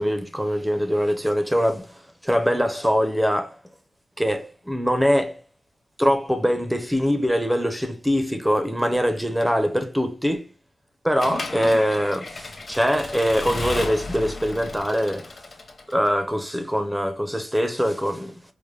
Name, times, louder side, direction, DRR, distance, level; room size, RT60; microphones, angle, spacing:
voice 1, 0.0-3.6 4.2-5.4 6.0-10.5 11.0-15.3 15.9-18.4, equal, 5° right, 0.5 m, -23 dB
Accelerating revving vroom / Mechanisms, 11.2-16.1, left 3 dB, 35° left, 0.8 m, -34 dB
5.0 x 2.1 x 3.2 m
wide cardioid pair, 150°, 0 cm